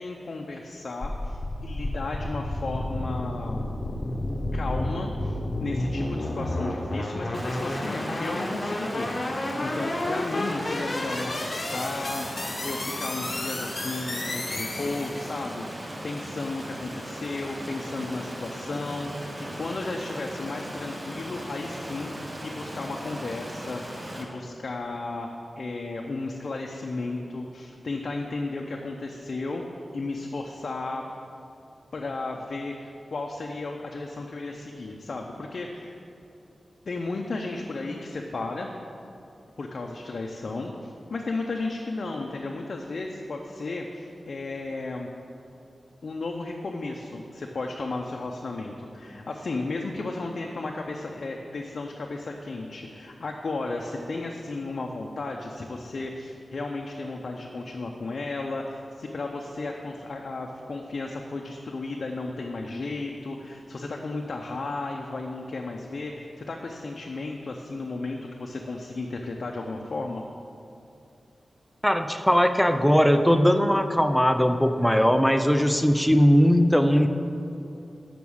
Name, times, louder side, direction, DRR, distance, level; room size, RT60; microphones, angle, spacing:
voice 1, 0.0-3.7 4.5-25.3 25.6-29.6 29.9-31.0 31.9-36.0 36.9-38.7 39.6-45.1 46.0-70.2, left 3 dB, 60° left, 1 dB, 0.6 m, -34 dB
sound 1, 1.0-15.4, left 1 dB, 40° left, 0.9 m, -31 dB
Stream, 7.3-24.2, right 1 dB, 25° right, 1.2 m, -38 dB
voice 2, 71.8-77.1, equal, 5° left, 7 dB, 0.5 m, -20 dB
6.2 x 6.0 x 7.1 m, 2.6 s
wide cardioid pair, 85°, 0 cm